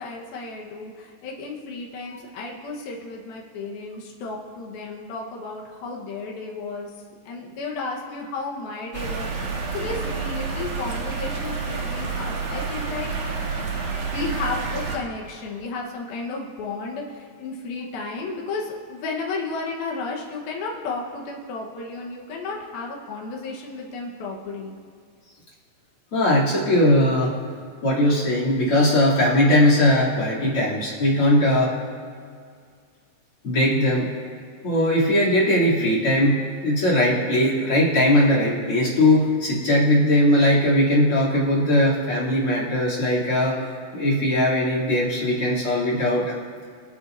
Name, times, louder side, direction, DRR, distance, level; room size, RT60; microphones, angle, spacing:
voice 1, 0.0-6.9 7.2-13.1 13.6-24.8, left 3 dB, 80° left, -2 dB, 3.1 m, -33 dB
sound 1, 8.9-15.0, right 4 dB, 60° right, 2.2 m, -29 dB
voice 2, 26.1-27.3 27.8-31.7 33.4-34.1 34.6-36.4 36.6-46.3, left 1 dB, 40° left, -5 dB, 3.4 m, -19 dB
25.0 x 9.3 x 2.6 m, 2.2 s
omnidirectional pair, 4.2 m